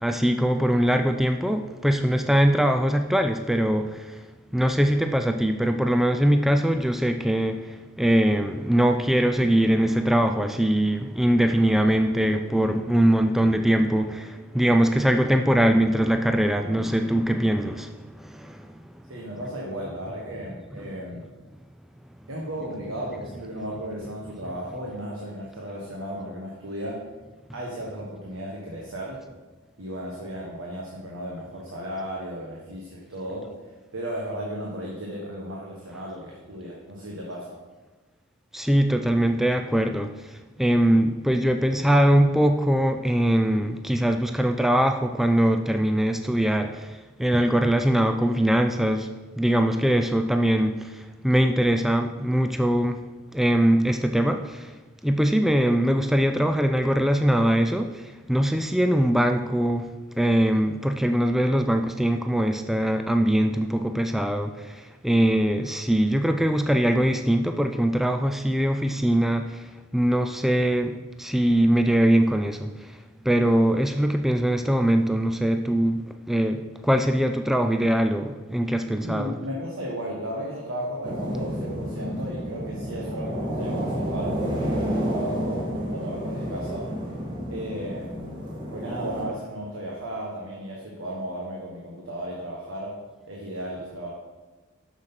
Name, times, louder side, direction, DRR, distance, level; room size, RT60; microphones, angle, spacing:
voice 1, 0.0-4.2 4.5-18.8 38.5-49.1 49.4-53.0 53.3-54.7 55.0-59.9 60.2-73.0 73.3-79.3, right 1 dB, ahead, 6 dB, 0.3 m, -22 dB
voice 2, 19.1-21.3 22.3-27.1 27.5-29.2 29.8-37.6 79.0-86.9 87.5-88.4 88.7-94.1, equal, 70° right, -2 dB, 1.4 m, -35 dB
sound 1, 81.0-89.2, equal, 20° right, 2.0 m, -30 dB
7.3 x 6.5 x 5.8 m, 1.3 s
head